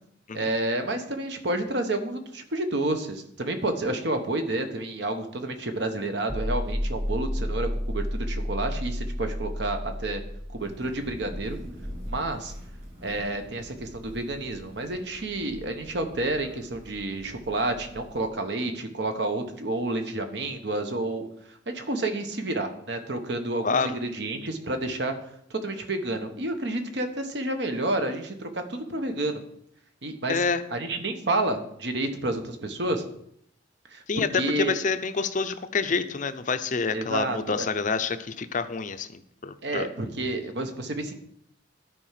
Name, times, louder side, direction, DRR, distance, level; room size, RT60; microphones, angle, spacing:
voice 1, 0.3-10.2 10.5-11.6 12.1-12.5 13.0-25.1 25.5-29.4 30.0-30.4 30.7-33.0 33.9-34.7 36.9-37.7 39.6-41.1, right 2 dB, 60° right, 6 dB, 1.1 m, -30 dB
sound 1, 6.3-11.3, equal, 10° right, 0.9 m, -31 dB
Thunder / Rain, 10.6-18.3, equal, 35° right, 2.3 m, -43 dB
voice 2, 23.6-24.0 30.3-30.6 34.1-39.9, left 4 dB, 40° left, 11 dB, 0.6 m, -27 dB
12.5 x 4.7 x 5.8 m, 0.72 s
head